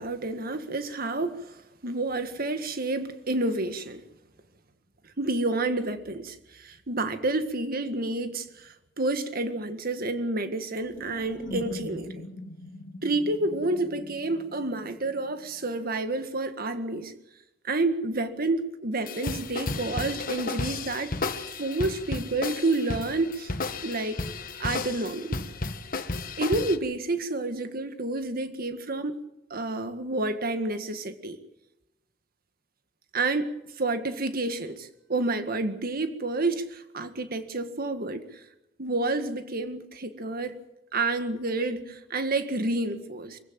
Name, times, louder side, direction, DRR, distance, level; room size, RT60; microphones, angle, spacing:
voice 1, 0.0-1.6 1.8-4.0 5.2-12.2 13.0-17.1 17.6-21.1 21.6-23.5 23.8-24.2 24.6-25.4 26.4-29.2 29.5-31.4 33.1-33.5 33.8-38.4 38.8-40.6 40.9-43.4, right 2 dB, 50° right, 9 dB, 1.8 m, -29 dB
sound 1, 10.8-15.4, equal, 80° left, 2.9 m, -41 dB
sound 2, 19.1-26.8, left 3 dB, 50° left, 1.4 m, -33 dB
24.5 x 16.0 x 7.7 m, 0.92 s
head